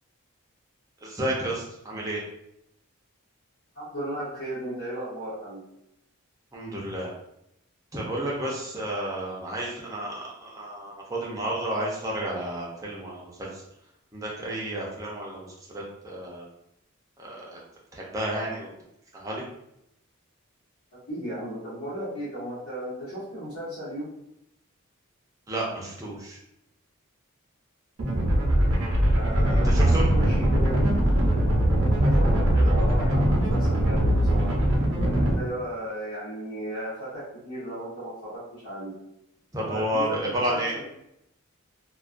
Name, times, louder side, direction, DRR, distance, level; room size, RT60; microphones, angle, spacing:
voice 1, 1.0-2.2 6.5-7.1 7.9-13.6 14.1-16.4 17.2-17.6 17.9-18.7 19.1-19.4 25.5-26.4 29.5-30.1 39.5-40.7, right 1 dB, 15° right, -4 dB, 0.5 m, -31 dB
voice 2, 3.7-5.6 20.9-24.1 29.1-30.8 31.9-34.5 35.2-38.9 39.6-40.8, right 1 dB, 80° left, -11 dB, 1.0 m, -35 dB
sound 1, 28.0-35.3, right 1 dB, 75° right, 0.6 m, -21 dB
2.3 x 2.2 x 2.5 m, 0.80 s
head